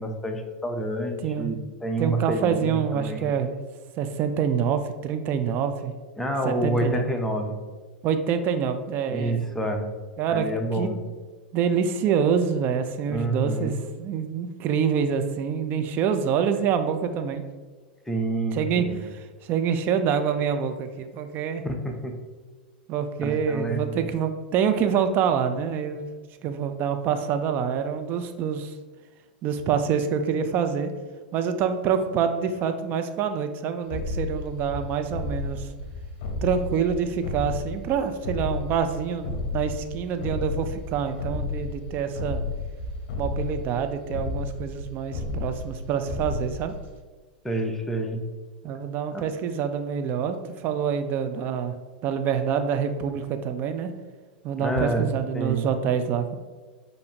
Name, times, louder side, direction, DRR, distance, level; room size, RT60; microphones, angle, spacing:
voice 1, 0.0-3.3 6.2-7.6 9.1-9.9 10.3-11.0 13.1-13.8 18.1-19.1 21.6-22.2 23.2-24.0 47.4-48.3 49.1-49.3 54.6-55.1 55.3-55.7, right 1 dB, 5° left, 3 dB, 0.6 m, -28 dB
voice 2, 2.0-3.6 4.0-5.9 6.4-7.1 8.0-9.3 10.2-11.0 11.5-17.4 18.5-18.8 19.4-21.6 22.9-26.1 26.4-28.7 29.4-30.9 31.3-35.7 36.4-42.4 43.2-46.7 48.6-51.7 52.0-53.9 54.4-56.4, right 7 dB, 40° right, 8 dB, 0.4 m, -26 dB
sound 1, 33.9-47.0, left 3 dB, 55° left, 0.8 m, -33 dB
6.8 x 2.6 x 2.9 m, 1.4 s
hypercardioid pair, 100°, 5 cm